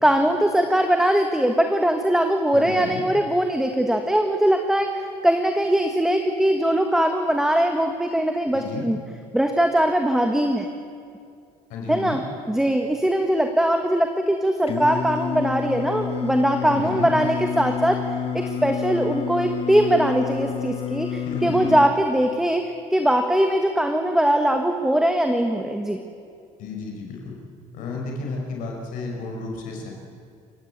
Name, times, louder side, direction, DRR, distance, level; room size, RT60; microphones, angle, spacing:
voice 1, 0.0-9.0 9.3-10.7 11.9-12.2 12.5-18.0 18.3-26.0, right 1 dB, 5° right, 5 dB, 1.5 m, -21 dB
voice 2, 2.5-3.0 8.5-8.9 11.7-12.2 16.6-17.1 21.3-21.8 26.6-27.4 27.7-29.9, left 3 dB, 65° left, 0 dB, 5.4 m, -33 dB
Singing, 14.7-21.9, left 8 dB, 40° left, 1.5 m, -29 dB
28.5 x 16.5 x 8.8 m, 2.3 s
cardioid pair, 125°, 15 cm